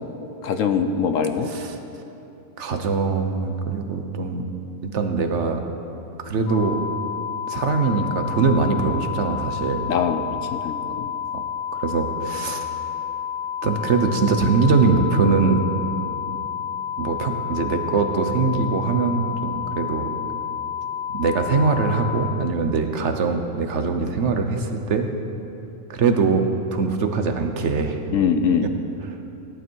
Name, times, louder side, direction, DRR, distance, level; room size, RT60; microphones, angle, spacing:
voice 1, 0.4-1.5 9.9-10.2 10.5-11.1 28.1-28.7, left 6 dB, 85° left, 7 dB, 1.1 m, -22 dB
voice 2, 2.6-4.4 4.8-5.6 6.2-6.8 7.5-9.8 11.3-11.4 11.8-12.7 13.6-15.7 17.0-20.1 21.1-25.1 25.9-26.5 26.7-28.0 28.6-28.7, right 4 dB, 65° right, 6 dB, 1.3 m, -22 dB
sound 1, 6.5-22.3, left 8 dB, 60° left, 1.2 m, -30 dB
17.5 x 11.5 x 4.6 m, 2.9 s
omnidirectional pair, 1.3 m